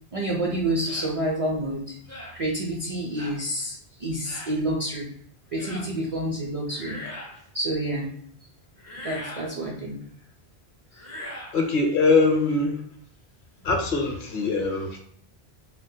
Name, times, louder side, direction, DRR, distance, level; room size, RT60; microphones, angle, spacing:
voice 1, 0.1-2.0 2.3-5.1 5.5-7.0 7.5-8.1 9.0-10.0, right 1 dB, 45° right, -2 dB, 0.4 m, -28 dB
sound 1, 0.8-1.1 2.1-2.4 3.2-3.4 4.2-4.6 5.6-5.9 6.7-7.4 8.8-9.5 10.9-11.6, left 1 dB, 25° left, 0.4 m, -39 dB
voice 2, 11.5-12.8 13.6-15.0, left 3 dB, 55° left, 2 dB, 0.7 m, -22 dB
3.6 x 2.1 x 2.7 m, 0.63 s
omnidirectional pair, 1.1 m